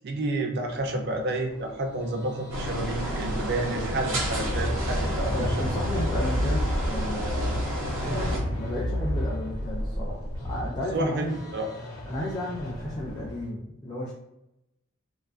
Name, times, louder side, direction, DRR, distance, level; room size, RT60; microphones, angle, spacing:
voice 1, 0.0-5.6 10.9-11.7, right 2 dB, 50° right, 4 dB, 0.4 m, -30 dB
Thunder / Rain, 0.7-13.5, left 1 dB, 85° left, 0.4 m, -45 dB
sound 1, 1.6-13.4, left 1 dB, 60° left, 0.8 m, -32 dB
sound 2, 2.5-8.4, right 1 dB, 70° right, 0.8 m, -31 dB
voice 2, 5.3-7.6 8.1-11.4 12.0-14.1, equal, 20° left, -6 dB, 0.3 m, -33 dB
2.5 x 2.3 x 2.3 m, 0.85 s
head